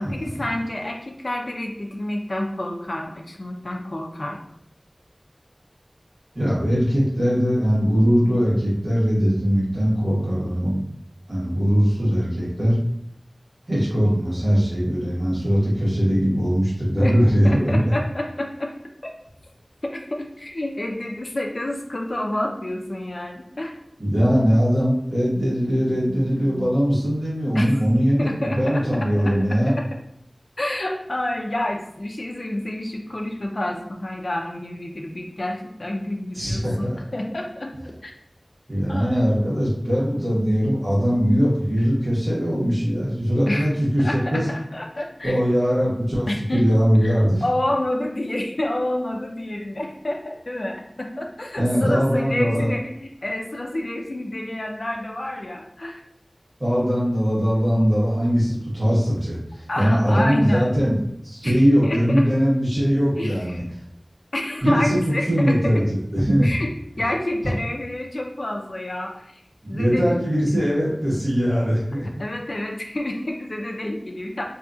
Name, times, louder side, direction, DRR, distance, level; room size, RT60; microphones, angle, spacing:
voice 1, 0.0-4.4 17.0-17.1 17.4-18.7 19.8-23.7 27.5-27.7 28.2-29.9 30.6-37.8 38.0-38.1 38.9-39.2 41.8-41.9 43.5-43.7 44.0-45.4 46.3-46.7 47.0-47.1 47.4-56.0 59.7-60.7 61.4-62.4 63.2-63.6 64.3-65.7 66.4-69.4 69.7-70.1 70.5-70.6 72.2-74.4, left 1 dB, 70° left, 1 dB, 0.4 m, -29 dB
voice 2, 6.3-10.8 11.3-12.8 13.7-17.9 24.0-29.7 36.3-37.0 38.7-44.5 45.2-47.4 51.6-52.7 56.6-61.0 61.2-63.6 64.6-65.8 66.1-66.5 69.7-72.0, equal, 60° right, -8 dB, 1.4 m, -21 dB
2.8 x 2.3 x 2.6 m, 0.73 s
wide cardioid pair, 40°, 0 cm